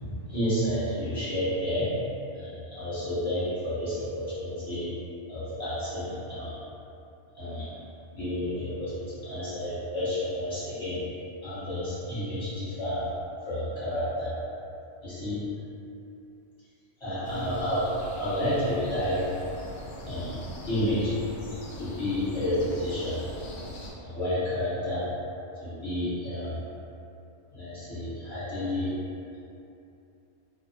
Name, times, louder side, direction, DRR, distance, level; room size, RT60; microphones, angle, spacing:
voice 1, 0.3-2.0 2.3-4.9 5.3-6.6 7.3-7.7 8.1-11.0 11.4-13.0 13.5-14.4 15.0-15.4 17.0-19.3 20.0-21.1 21.8-23.2 24.0-25.1 25.6-26.6 27.5-28.9, left 1 dB, 25° left, -14 dB, 1.0 m, -30 dB
sound 1, 17.2-23.9, left 1 dB, 80° left, 0.9 m, -41 dB
2.2 x 2.0 x 2.8 m, 2.7 s
omnidirectional pair, 1.3 m